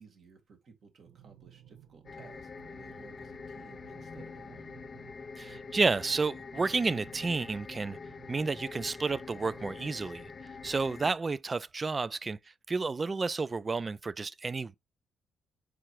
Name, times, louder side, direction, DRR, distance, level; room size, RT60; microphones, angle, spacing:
voice 1, 0.0-4.7, right 5 dB, 55° right, 1.9 m, -56 dB
sound 1, 1.0-10.9, right 10 dB, 80° right, 1.1 m, -57 dB
sound 2, 2.1-11.1, left 5 dB, 40° left, 0.4 m, -45 dB
voice 2, 5.4-8.0 8.3-10.2 10.6-12.4 12.7-14.8, right 4 dB, 30° right, 0.3 m, -31 dB
4.9 x 4.5 x 4.8 m
cardioid pair, 90°, 0 cm